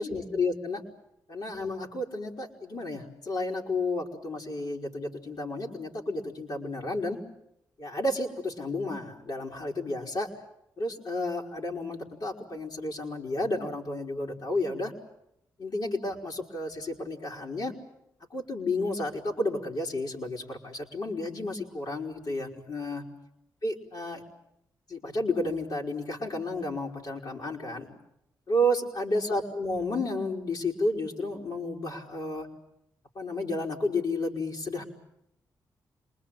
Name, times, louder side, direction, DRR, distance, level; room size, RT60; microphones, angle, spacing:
voice 1, 0.0-0.8 1.3-7.2 7.8-10.3 10.8-14.9 15.6-17.7 18.3-23.0 23.6-24.2 24.9-27.9 28.5-32.5 33.1-34.8, left 1 dB, 65° left, -2 dB, 4.4 m, -31 dB
27.0 x 21.0 x 8.9 m, 0.79 s
cardioid pair, 60°, 8 cm